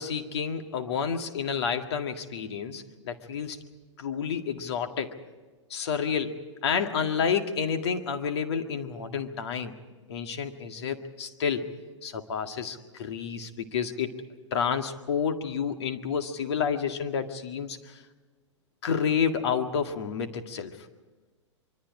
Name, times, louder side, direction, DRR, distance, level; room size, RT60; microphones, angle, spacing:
voice 1, 0.0-3.6 4.0-5.1 5.7-9.7 10.1-11.7 12.0-14.1 14.5-18.0 18.8-20.7, left 6 dB, 60° left, 6 dB, 2.0 m, -30 dB
25.5 x 24.0 x 4.9 m, 1.3 s
figure-of-eight pair, 105°, 16 cm